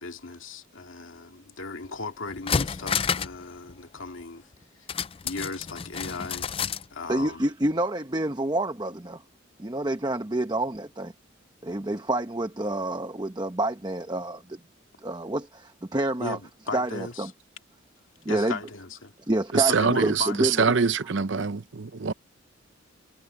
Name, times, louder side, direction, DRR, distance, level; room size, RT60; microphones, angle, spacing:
voice 1, 0.0-4.5 4.8-4.9 5.2-6.5 6.9-7.5 16.2-17.3 18.3-19.1 19.6-20.7, left 3 dB, 75° left, 2.3 m, -37 dB
sound 1, 1.9-2.0 2.3-3.4 3.7-3.8 4.9-6.9 7.2-7.3, left 6 dB, 25° left, 0.4 m, -29 dB
voice 2, 7.1-9.2 9.6-11.1 11.6-14.6 15.0-16.4 16.7-17.3 18.2-18.6 19.3-20.7, right 1 dB, 20° right, 0.9 m, -28 dB
voice 3, 19.5-22.1, right 5 dB, 60° right, 0.7 m, -24 dB
head